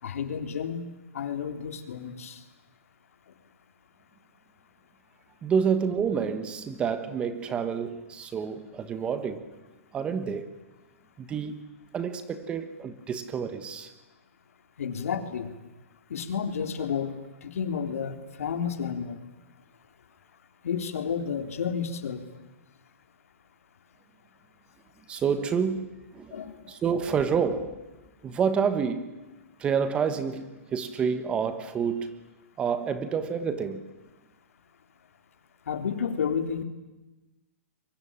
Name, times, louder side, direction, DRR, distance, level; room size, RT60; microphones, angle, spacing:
voice 1, 0.0-0.8 1.1-2.4 14.8-15.5 16.1-17.2 17.4-19.2 20.6-22.2 26.3-26.7 35.7-36.6, left 7 dB, 75° left, 3.5 m, -31 dB
voice 2, 5.4-9.5 9.9-10.6 11.2-11.6 11.9-13.9 25.1-26.4 26.7-27.8 28.2-29.1 29.6-32.1 32.6-33.8, right 6 dB, 15° right, 1.3 m, -28 dB
26.5 x 23.5 x 8.9 m
hypercardioid pair, 165°, 8 cm